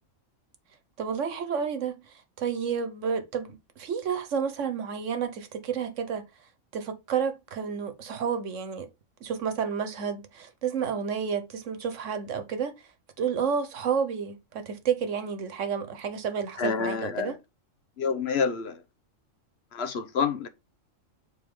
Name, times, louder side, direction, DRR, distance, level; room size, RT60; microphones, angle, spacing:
voice 1, 1.0-6.3 6.7-8.9 9.2-12.7 13.2-17.4, right 6 dB, 65° right, 1.4 m, -30 dB
voice 2, 16.6-17.3 18.0-18.8 19.7-20.5, left 5 dB, 55° left, 1.0 m, -28 dB
7.0 x 4.1 x 3.7 m
omnidirectional pair, 1.4 m